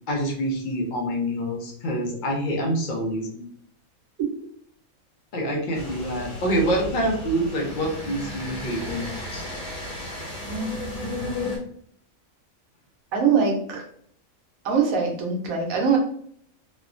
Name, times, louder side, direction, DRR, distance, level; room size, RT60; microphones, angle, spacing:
voice 1, 0.1-3.5 5.3-9.4, equal, 50° left, 0 dB, 0.6 m, -26 dB
sound 1, 5.7-11.6, left 1 dB, 65° left, 1.4 m, -34 dB
voice 2, 13.1-13.8 14.6-16.0, right 5 dB, 85° right, 0 dB, 1.2 m, -23 dB
3.1 x 2.1 x 2.4 m, 0.63 s
omnidirectional pair, 1.4 m